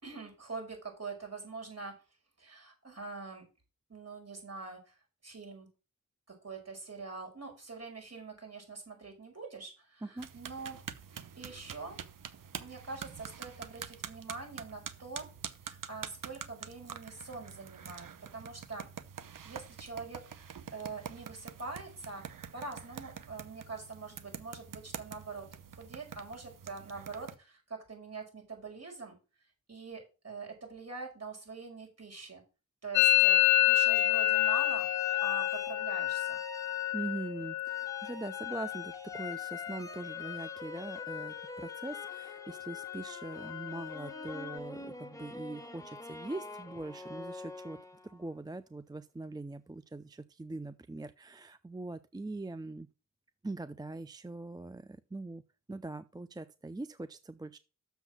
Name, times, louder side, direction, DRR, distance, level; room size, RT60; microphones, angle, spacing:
voice 1, 0.0-2.0 2.4-3.4 3.9-5.0 5.2-5.7 6.4-10.8 11.1-12.0 12.6-15.3 15.6-18.9 19.2-22.3 22.5-25.5 25.7-29.1 29.7-32.4 32.8-34.9 35.2-36.4, right 4 dB, 50° right, 5.3 m, -44 dB
sound 1, 10.2-27.4, right 8 dB, 70° right, 0.9 m, -46 dB
Musical instrument, 32.9-40.6 40.8-41.4 41.7-42.3 42.5-44.6, left 17 dB, 65° left, 0.4 m, -30 dB
sound 2, 33.9-37.3 37.6-48.3, left 2 dB, 10° left, 1.4 m, -46 dB
voice 2, 36.9-47.8 48.0-52.9 53.4-55.4 55.7-57.6, right 2 dB, 10° right, 0.5 m, -42 dB
6.9 x 6.3 x 6.1 m
cardioid pair, 45°, 33 cm